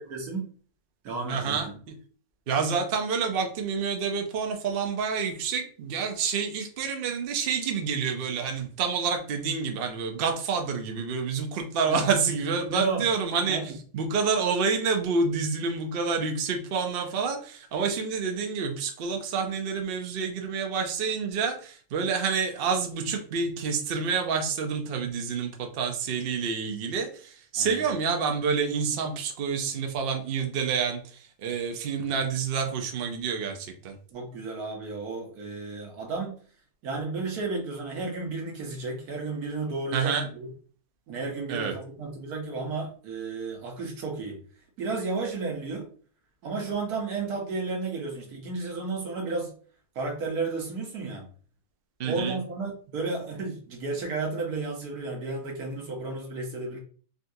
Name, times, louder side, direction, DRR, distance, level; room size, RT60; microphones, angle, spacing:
voice 1, 0.1-0.5 1.0-1.8 11.9-12.1 12.7-13.1 13.4-13.8 27.6-27.9 34.1-36.4 36.8-40.5 41.1-44.4 44.8-45.9 46.4-49.5 49.9-51.3 52.0-56.8, right 3 dB, 75° right, 0 dB, 1.4 m, -32 dB
voice 2, 1.3-1.7 2.5-13.6 13.9-34.0 39.9-40.2 41.5-41.7 52.0-52.4, right 5 dB, 60° right, 3 dB, 0.6 m, -28 dB
3.8 x 2.3 x 2.6 m, 0.43 s
omnidirectional pair, 1.6 m